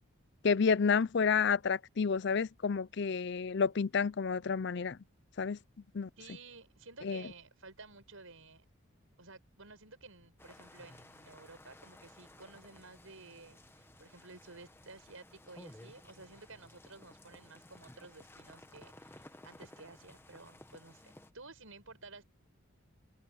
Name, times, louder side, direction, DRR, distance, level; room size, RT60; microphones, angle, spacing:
voice 1, 0.4-5.0 5.4-5.6 5.9-6.1 7.0-7.2, left 5 dB, 55° left, 0.5 m, -30 dB
voice 2, 6.2-8.6 9.2-22.2, right 3 dB, 80° right, 6.2 m, -53 dB
sound 1, 10.4-21.3, left 1 dB, 10° left, 1.3 m, -56 dB
head